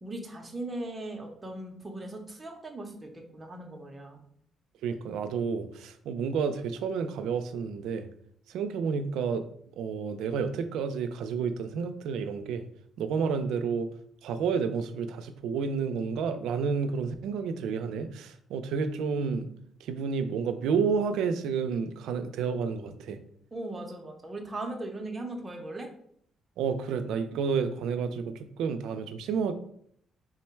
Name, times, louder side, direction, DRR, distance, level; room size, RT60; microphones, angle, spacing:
voice 1, 0.0-4.2 23.5-25.9, right 2 dB, 20° right, 2 dB, 0.7 m, -38 dB
voice 2, 4.8-8.1 8.5-9.4 9.8-12.6 13.0-13.9 14.2-19.5 19.8-23.2 26.6-29.5, right 5 dB, 85° right, 9 dB, 0.4 m, -30 dB
3.7 x 2.1 x 4.4 m, 0.66 s
cardioid pair, 110°, 0 cm